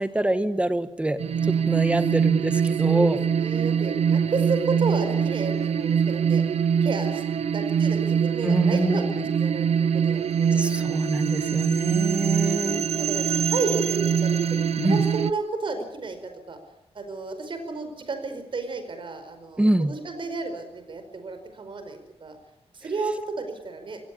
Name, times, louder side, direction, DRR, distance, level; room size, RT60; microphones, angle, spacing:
voice 1, 0.0-3.2 8.4-9.3 10.6-12.9 14.8-15.0 19.6-19.9, right 1 dB, 10° right, 11 dB, 1.5 m, -25 dB
sound 1, 1.2-15.3, right 7 dB, 80° right, 0.9 m, -23 dB
voice 2, 2.8-6.4 6.8-7.2 7.5-11.2 12.0-16.6 16.9-22.4 22.7-24.0, right 3 dB, 50° right, 7 dB, 4.9 m, -32 dB
26.5 x 17.5 x 8.6 m, 0.83 s
wide cardioid pair, 160°, 11 cm